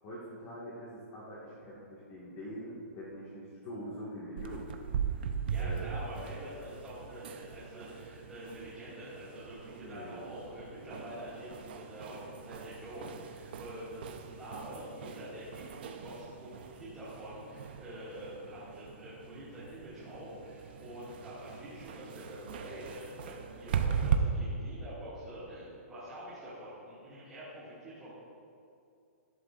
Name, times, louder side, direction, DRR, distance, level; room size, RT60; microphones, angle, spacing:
voice 1, 0.0-5.3 5.6-5.9 9.8-10.2, equal, 20° left, -7 dB, 1.7 m, -44 dB
sound 1, 4.4-24.2, right 7 dB, 40° right, 0.6 m, -39 dB
voice 2, 5.5-28.1, equal, 5° right, -14 dB, 2.0 m, -46 dB
16.5 x 11.5 x 2.5 m, 2.5 s
hypercardioid pair, 175°, 8 cm